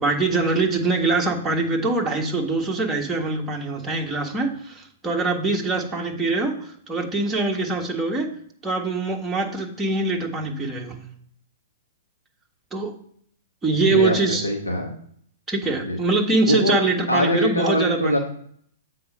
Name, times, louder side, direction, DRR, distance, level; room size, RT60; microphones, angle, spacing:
voice 1, 0.0-8.3 8.6-11.0 12.7-12.9 13.6-14.5 15.5-18.2, right 3 dB, 10° right, -1 dB, 1.4 m, -23 dB
voice 2, 13.9-14.9 15.8-16.0 16.4-16.8 17.1-18.2, left 1 dB, 80° left, 1 dB, 1.2 m, -22 dB
7.7 x 4.3 x 5.4 m, 0.65 s
figure-of-eight pair, 110°, 0 cm